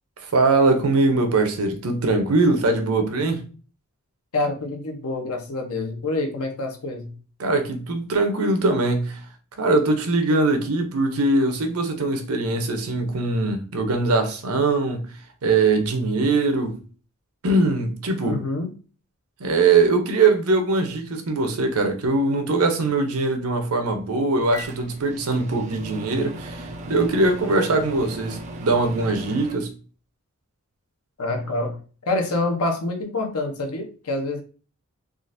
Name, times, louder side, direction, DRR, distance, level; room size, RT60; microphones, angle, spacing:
voice 1, 0.3-3.4 7.4-9.2 9.6-15.0 15.4-16.8 17.4-18.4 19.4-29.7, right 3 dB, 80° right, 0.7 m, -21 dB
voice 2, 4.3-7.2 18.2-18.7 31.2-31.8 32.1-34.4, left 2 dB, 80° left, 0.8 m, -26 dB
Microwave oven, 24.4-29.5, right 1 dB, 30° right, 0.5 m, -37 dB
3.7 x 2.4 x 2.5 m
head